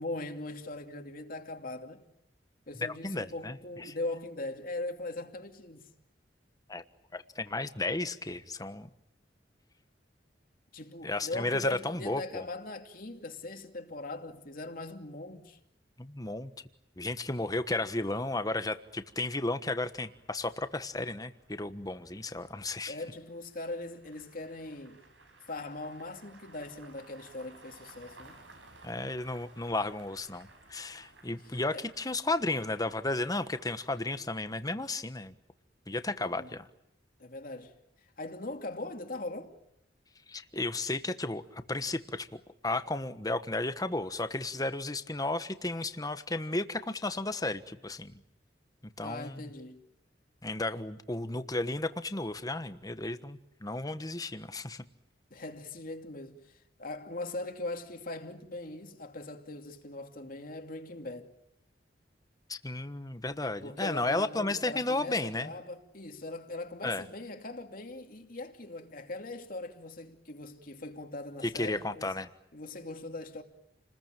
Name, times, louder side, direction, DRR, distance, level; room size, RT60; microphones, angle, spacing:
voice 1, 0.0-2.0 2.7-5.9 10.7-15.6 22.9-25.0 25.5-28.4 31.7-31.8 36.4-36.6 37.2-37.7 38.2-39.5 49.0-49.8 55.3-61.3 63.6-72.1 72.5-73.4, left 2 dB, 50° left, 2.6 m, -40 dB
voice 2, 2.8-3.9 6.7-6.8 7.1-8.9 11.0-12.4 16.0-16.5 17.0-23.0 28.8-35.3 35.9-36.7 40.3-48.1 49.0-49.5 50.4-54.8 62.5-65.5 66.8-67.0 71.4-72.3, left 2 dB, 20° left, 1.3 m, -33 dB
sound 1, 18.1-34.2, right 2 dB, 85° right, 6.6 m, -58 dB
30.0 x 20.5 x 9.1 m
head